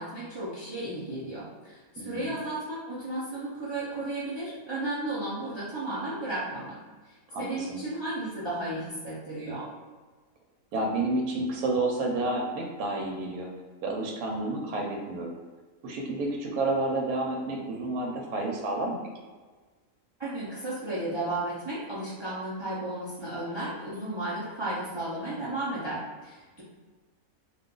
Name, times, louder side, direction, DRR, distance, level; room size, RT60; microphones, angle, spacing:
voice 1, 0.0-6.8 7.1-9.7 20.2-26.6, right 1 dB, 35° right, -10 dB, 0.4 m, -34 dB
voice 2, 2.0-2.3 7.3-7.8 10.7-13.5 13.8-15.3 15.8-19.0, right 2 dB, 90° right, 1 dB, 1.1 m, -30 dB
2.5 x 2.4 x 3.7 m, 1.4 s
omnidirectional pair, 1.5 m